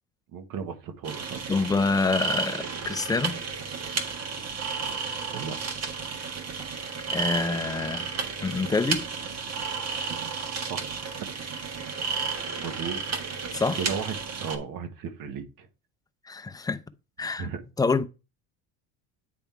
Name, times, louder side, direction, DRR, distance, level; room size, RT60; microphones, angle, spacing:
voice 1, 0.3-1.4 4.8-5.6 10.1-10.3 10.7-10.8 12.6-13.0 13.8-15.7 17.2-17.6, right 6 dB, 55° right, 1.5 m, -35 dB
sound 1, 1.0-14.6, right 5 dB, 40° right, 1.6 m, -32 dB
voice 2, 1.5-3.4 7.1-8.1 8.4-9.1 13.5-13.8 16.3-16.8 17.2-17.5 17.8-18.0, left 4 dB, 10° left, 0.5 m, -26 dB
9.3 x 3.6 x 4.5 m
supercardioid pair, 120°, 40 cm